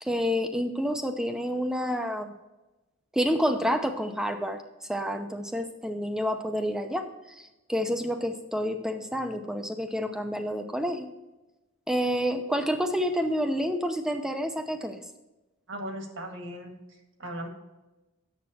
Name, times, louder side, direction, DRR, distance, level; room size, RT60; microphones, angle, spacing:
voice 1, 0.0-2.3 3.1-4.6 4.9-7.1 7.4-11.1 11.9-15.0, equal, 5° right, 6 dB, 0.7 m, -29 dB
voice 2, 15.7-16.8 17.2-17.5, right 1 dB, 65° right, 3 dB, 1.8 m, -37 dB
9.7 x 7.5 x 4.3 m, 1.1 s
head